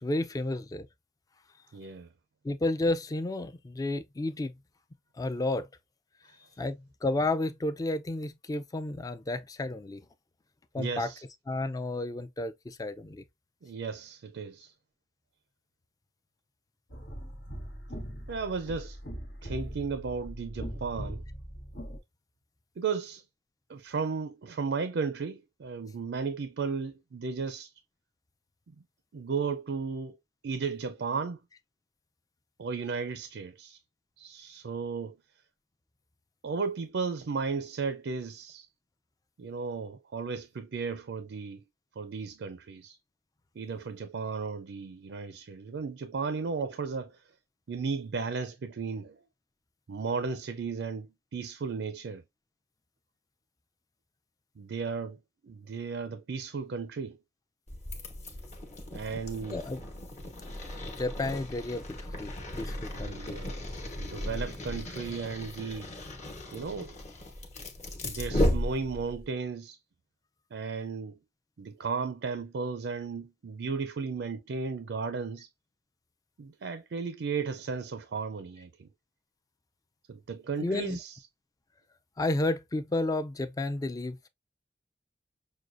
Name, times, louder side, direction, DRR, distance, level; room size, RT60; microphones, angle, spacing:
voice 1, 0.0-0.9 2.4-4.5 5.2-5.7 6.6-10.0 10.7-11.1 11.5-13.2 59.5-59.8 60.8-63.4 80.6-81.0 82.2-84.3, left 2 dB, 20° left, 0.4 m, -32 dB
voice 2, 1.7-2.1 10.8-11.2 13.6-14.7 18.3-19.0 19.4-21.2 22.8-23.2 23.7-27.7 28.7-28.8 29.1-30.2 30.4-31.4 32.6-33.8 34.2-35.1 36.4-38.7 39.4-41.6 42.0-43.0 43.6-47.2 47.7-49.2 49.9-52.2 54.6-57.2 58.9-59.6 63.0-63.6 64.0-65.9 66.5-67.0 68.0-69.8 70.5-71.2 71.6-75.5 76.4-78.9 80.1-81.2, right 5 dB, 90° right, 0.4 m, -35 dB
sound 1, 16.9-22.0, equal, 90° left, 1.1 m, -40 dB
sound 2, 57.7-69.3, left 1 dB, 45° left, 1.1 m, -35 dB
6.1 x 2.2 x 2.5 m
head